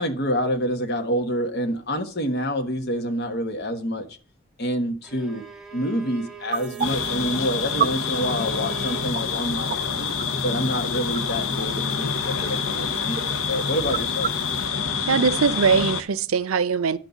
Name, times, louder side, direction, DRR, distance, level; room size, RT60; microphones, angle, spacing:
voice 1, 0.0-4.1 4.6-5.4 5.7-10.1 10.4-14.3, equal, 50° left, 1.4 m, -27 dB
Bowed string instrument, 5.0-9.1, right 8 dB, ahead, 1.7 m, -41 dB
sound 1, 6.5-14.7, right 8 dB, 35° right, 0.4 m, -34 dB
sound 2, 6.8-16.0, left 5 dB, 75° left, 0.9 m, -27 dB
voice 2, 15.1-17.0, right 5 dB, 85° right, 0.5 m, -21 dB
11.0 x 4.1 x 7.1 m
head